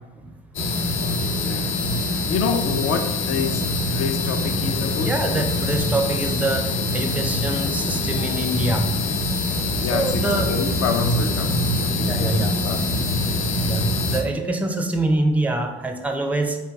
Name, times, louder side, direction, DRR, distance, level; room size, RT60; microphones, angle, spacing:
sound 1, 0.5-14.2, left 2 dB, 70° left, 0.9 m, -24 dB
voice 1, 1.2-1.7 2.3-5.4 9.6-12.9, left 5 dB, 55° left, 5 dB, 0.6 m, -28 dB
voice 2, 5.0-8.9 9.9-10.5 12.0-12.5 13.6-16.6, right 2 dB, 5° right, 5 dB, 0.5 m, -25 dB
3.8 x 2.2 x 4.5 m, 1.1 s
hypercardioid pair, 65°, 30 cm